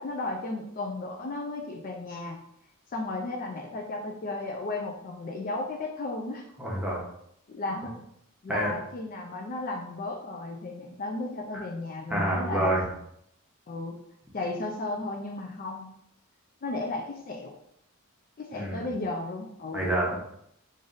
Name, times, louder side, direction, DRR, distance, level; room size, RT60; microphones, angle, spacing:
voice 1, 0.0-2.4 2.9-6.5 7.5-8.0 8.4-12.7 13.7-14.0 14.3-16.0 16.6-17.5 18.4-19.9, left 2 dB, 40° left, 1 dB, 0.4 m, -34 dB
voice 2, 6.6-7.0 8.5-8.7 11.5-11.6 12.1-12.8 18.5-18.9 19.7-20.2, right 1 dB, 5° right, -4 dB, 0.9 m, -27 dB
3.4 x 2.6 x 3.8 m, 0.75 s
head